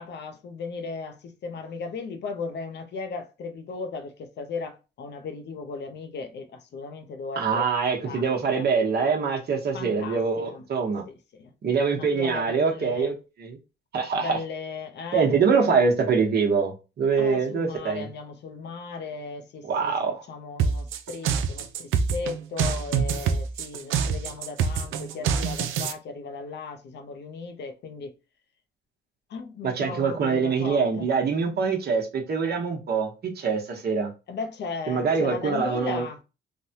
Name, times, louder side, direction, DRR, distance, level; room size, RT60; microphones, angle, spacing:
voice 1, 0.0-7.7 8.0-8.2 8.5-8.7 9.7-10.6 11.1-11.5 11.9-13.1 14.1-15.3 17.2-28.1 29.3-31.1 34.3-36.2, left 4 dB, 60° left, 0.6 m, -36 dB
voice 2, 7.4-11.0 11.6-13.1 13.4-13.6 13.9-14.4 15.1-18.1 19.6-20.2 29.6-34.1 34.9-36.0, right 5 dB, 55° right, 0.9 m, -24 dB
sound 1, 20.6-25.9, right 6 dB, 85° right, 0.4 m, -25 dB
3.3 x 2.2 x 2.7 m
cardioid pair, 90°, 20 cm